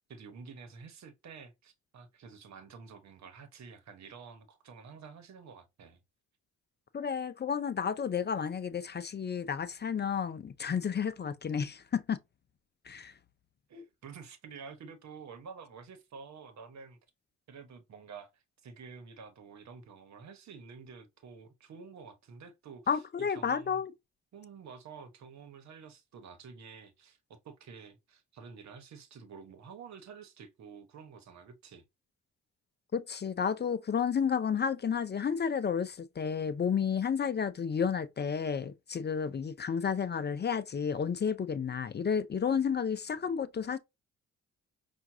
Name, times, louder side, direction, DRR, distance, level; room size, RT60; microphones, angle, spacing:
voice 1, 0.1-6.0 13.7-17.0 17.5-23.8 24.3-31.8, right 5 dB, 60° right, 1.2 m, -50 dB
voice 2, 6.9-12.2 12.9-13.1 22.9-23.9 32.9-43.8, left 7 dB, 35° left, 0.6 m, -31 dB
5.8 x 2.6 x 2.7 m
supercardioid pair, 60°, 31 cm